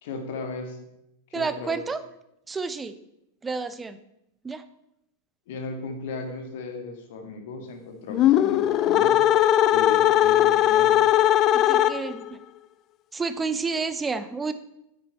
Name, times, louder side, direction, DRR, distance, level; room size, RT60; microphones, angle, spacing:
voice 1, 0.0-0.8 1.3-1.9 5.5-9.2 9.7-11.1, left 3 dB, 55° left, 5 dB, 1.8 m, -36 dB
voice 2, 1.3-2.0 2.5-2.9 3.4-4.0 4.4-4.6 11.5-12.4 13.1-14.5, right 4 dB, 15° right, 12 dB, 0.7 m, -30 dB
sound 1, 8.1-12.3, left 12 dB, 35° left, 0.3 m, -19 dB
9.4 x 8.4 x 4.4 m, 0.82 s
figure-of-eight pair, 90°, 0 cm